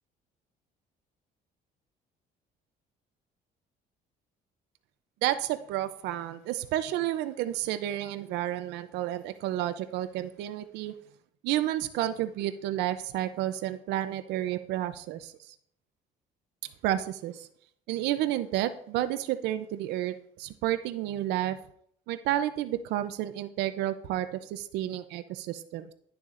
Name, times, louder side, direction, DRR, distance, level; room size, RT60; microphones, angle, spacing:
voice 1, 5.2-10.9 11.4-15.5 16.8-17.5 17.9-21.6 22.1-25.9, right 13 dB, 85° right, 12 dB, 0.5 m, -31 dB
11.5 x 6.9 x 2.5 m, 0.65 s
cardioid pair, 110°, 17 cm